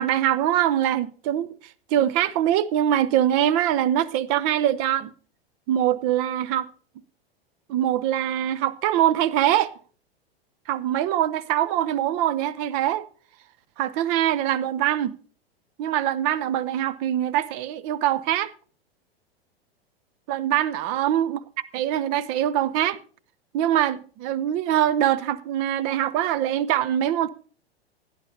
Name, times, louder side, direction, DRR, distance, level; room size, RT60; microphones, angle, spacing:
voice 1, 0.0-5.1 5.7-6.7 7.7-9.7 10.7-13.1 13.8-15.2 15.8-18.5 20.3-21.4 21.7-23.0 23.5-27.3, right 11 dB, 35° right, 0.6 m, -23 dB
16.5 x 9.9 x 2.7 m
figure-of-eight pair, 95°, 31 cm